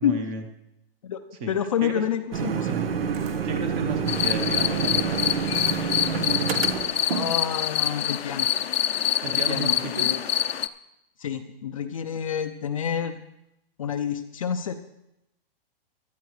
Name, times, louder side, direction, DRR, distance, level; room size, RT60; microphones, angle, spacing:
voice 1, 0.0-0.4 1.4-1.5 1.8-2.0 2.7-3.0 3.4-5.3 9.2-10.1, right 3 dB, 15° right, 6 dB, 0.9 m, -33 dB
voice 2, 1.5-2.8 7.1-8.5 9.3-10.2 11.2-13.2 13.8-14.7, left 8 dB, 35° left, 7 dB, 0.5 m, -28 dB
sound 1, 2.3-7.4, right 6 dB, 75° right, 1.2 m, -27 dB
Camera, 3.1-8.2, right 5 dB, 35° right, 2.4 m, -51 dB
sound 2, 4.1-10.7, left 11 dB, 85° left, 0.7 m, -26 dB
17.5 x 12.5 x 3.2 m, 0.85 s
hypercardioid pair, 170°, 30 cm